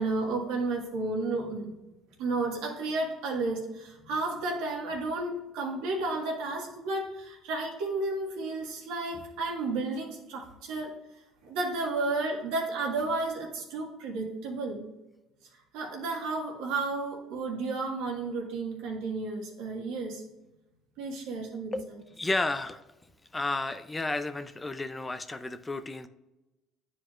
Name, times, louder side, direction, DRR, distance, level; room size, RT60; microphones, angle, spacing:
voice 1, 0.0-1.7 2.2-10.9 11.4-14.9 15.7-20.2 21.0-21.8, right 3 dB, 80° right, 0 dB, 1.8 m, -32 dB
voice 2, 22.2-22.8 23.3-26.1, left 2 dB, 20° left, 9 dB, 0.5 m, -32 dB
9.9 x 4.8 x 2.5 m, 1.0 s
supercardioid pair, 75°, 0 cm